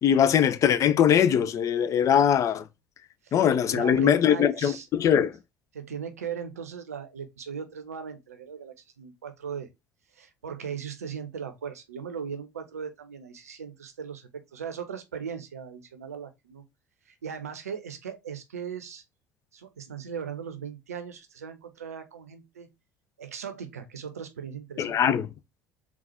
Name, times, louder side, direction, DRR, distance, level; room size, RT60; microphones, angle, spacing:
voice 1, 0.0-2.6 3.3-5.4 24.8-25.3, left 9 dB, 40° left, 0.5 m, -21 dB
voice 2, 3.7-4.9 5.7-9.7 10.1-16.6 17.1-19.0 19.5-22.7 23.2-25.0, right 7 dB, 80° right, 0.6 m, -38 dB
3.9 x 2.3 x 4.2 m
figure-of-eight pair, 60°, 8 cm